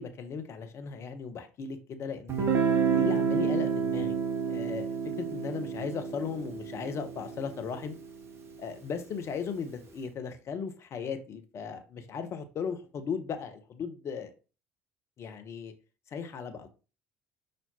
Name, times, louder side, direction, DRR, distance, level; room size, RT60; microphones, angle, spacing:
voice 1, 0.0-2.5 2.9-4.9 5.2-7.9 8.6-14.3 15.2-15.7 16.1-16.7, left 6 dB, 40° left, 8 dB, 0.9 m, -37 dB
Guitar, 2.3-8.1, right 6 dB, 40° right, 1.1 m, -29 dB
5.6 x 3.2 x 2.8 m, 0.33 s
figure-of-eight pair, 55°, 7 cm